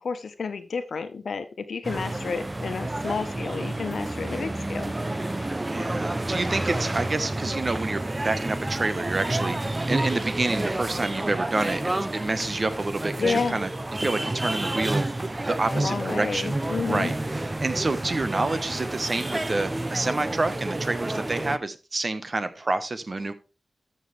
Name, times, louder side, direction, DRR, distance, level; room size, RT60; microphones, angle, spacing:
voice 1, 0.0-5.5 13.2-13.6 15.7-17.1, left 5 dB, 80° left, 9 dB, 1.1 m, -31 dB
sound 1, 1.8-21.6, right 2 dB, 25° right, 0.6 m, -30 dB
voice 2, 5.6-13.7 14.0-16.6 16.9-17.1 17.4-23.3, right 2 dB, 45° right, 12 dB, 1.2 m, -28 dB
13.5 x 6.7 x 3.4 m, 0.29 s
wide cardioid pair, 70°, 0 cm